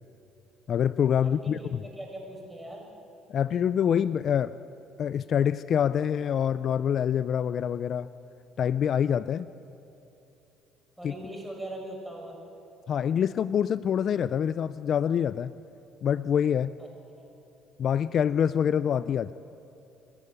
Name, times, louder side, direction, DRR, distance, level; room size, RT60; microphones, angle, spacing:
voice 1, 0.7-1.8 3.3-4.5 5.0-8.1 8.6-9.5 11.0-11.1 12.9-15.5 16.0-16.7 17.8-19.3, left 8 dB, 55° left, 16 dB, 0.4 m, -26 dB
voice 2, 1.2-2.8 11.0-12.4 16.8-16.9, right 1 dB, 5° right, 0 dB, 6.3 m, -40 dB
28.0 x 11.0 x 9.7 m, 2.9 s
supercardioid pair, 90°, 0 cm